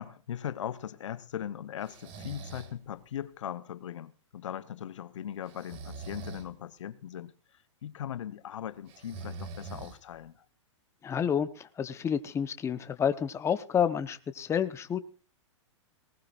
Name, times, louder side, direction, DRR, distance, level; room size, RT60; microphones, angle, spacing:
voice 1, 0.0-7.3 7.8-10.4, left 10 dB, 75° left, 1.0 m, -39 dB
Breathing, 1.8-2.8 5.5-6.5 8.9-10.3, right 4 dB, 40° right, 2.2 m, -43 dB
voice 2, 11.0-15.0, left 8 dB, 15° left, 0.9 m, -29 dB
19.0 x 19.0 x 2.5 m
hypercardioid pair, 120°, 16 cm